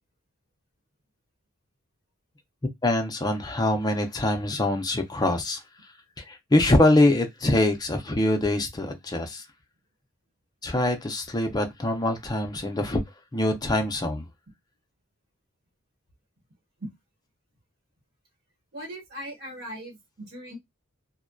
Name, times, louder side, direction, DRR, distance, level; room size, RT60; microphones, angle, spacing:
voice 1, 2.8-5.6 6.2-9.4 10.6-13.0 13.3-14.3, left 1 dB, 20° left, 0.5 m, -24 dB
voice 2, 18.7-20.6, equal, 50° right, 1.1 m, -39 dB
2.6 x 2.1 x 2.2 m
head